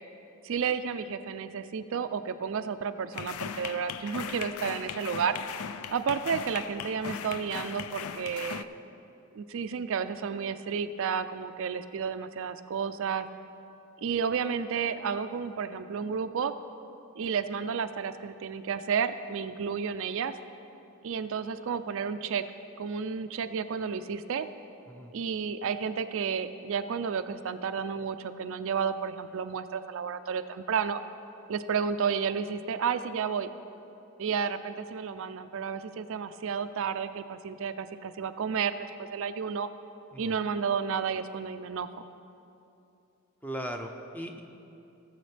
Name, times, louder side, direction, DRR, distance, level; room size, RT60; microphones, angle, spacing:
voice 1, 0.4-5.4 5.9-8.7 9.3-13.3 14.0-16.5 17.2-20.3 21.0-22.4 22.8-24.5 25.1-31.0 31.5-33.5 34.2-39.7 40.2-41.9, right 6 dB, 65° right, 10 dB, 0.4 m, -31 dB
sound 1, 3.1-8.6, left 7 dB, 75° left, 0.4 m, -38 dB
voice 2, 43.4-44.4, equal, 10° left, 4 dB, 0.6 m, -38 dB
18.5 x 7.2 x 3.3 m, 2.8 s
head